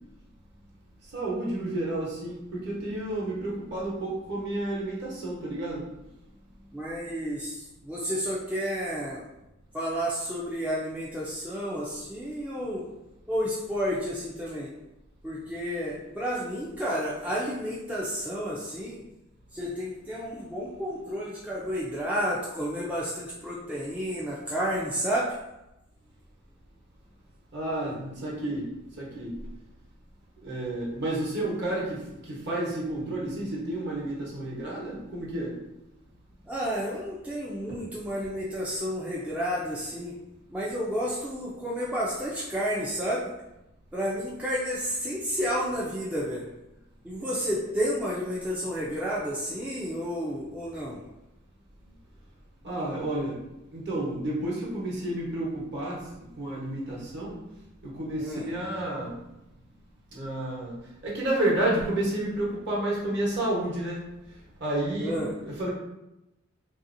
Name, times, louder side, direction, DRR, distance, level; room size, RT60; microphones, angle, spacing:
voice 1, 1.1-5.8 27.5-29.3 30.4-35.5 37.7-37.8 52.6-53.4 53.7-56.1 56.4-57.4 57.8-59.2 60.1-60.7 61.0-64.1 64.6-65.7, right 1 dB, 55° right, -5 dB, 1.0 m, -30 dB
voice 2, 6.7-7.6 7.8-9.2 9.7-12.8 13.3-14.7 15.2-19.0 19.5-25.3 36.5-40.1 40.5-43.3 43.9-46.4 47.0-51.0 58.2-58.5 65.0-65.4, equal, 5° right, -6 dB, 0.3 m, -31 dB
3.4 x 2.7 x 2.5 m, 0.94 s
head